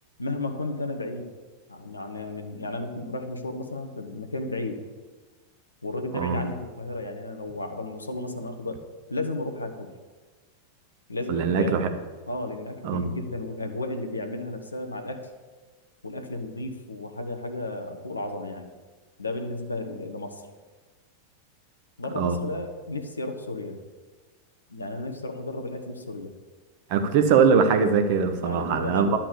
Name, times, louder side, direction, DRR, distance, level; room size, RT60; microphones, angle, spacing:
voice 1, 0.2-1.3 1.7-4.8 5.8-8.8 9.1-9.9 11.1-11.9 12.3-15.3 16.0-18.7 19.2-20.4 22.0-23.8 24.7-26.3 28.3-29.2, left 2 dB, 80° left, 6 dB, 1.1 m, -33 dB
voice 2, 11.3-11.9 12.8-13.1 22.2-22.4 26.9-29.2, right 6 dB, 50° right, 7 dB, 1.1 m, -22 dB
11.0 x 5.8 x 7.0 m, 1.4 s
figure-of-eight pair, 90°, 0 cm